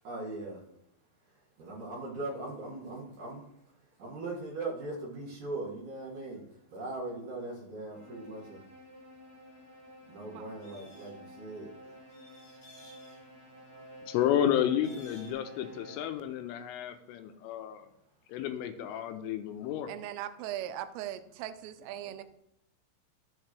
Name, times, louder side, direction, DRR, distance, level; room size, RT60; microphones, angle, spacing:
voice 1, 0.0-0.6 1.6-3.4 4.0-6.4 6.7-8.6 10.1-11.1 11.4-11.7, right 2 dB, 55° right, -5 dB, 2.3 m, -39 dB
sound 1, 7.9-16.4, equal, 5° left, 3.0 m, -52 dB
sound 2, 10.6-11.1 12.1-13.2 14.8-15.3, left 2 dB, 45° left, 4.2 m, -56 dB
voice 2, 14.1-17.9 18.3-19.9, left 10 dB, 85° left, 8 dB, 3.3 m, -31 dB
voice 3, 19.9-22.2, right 12 dB, 90° right, 11 dB, 3.3 m, -39 dB
12.5 x 7.4 x 3.1 m, 0.76 s
omnidirectional pair, 5.7 m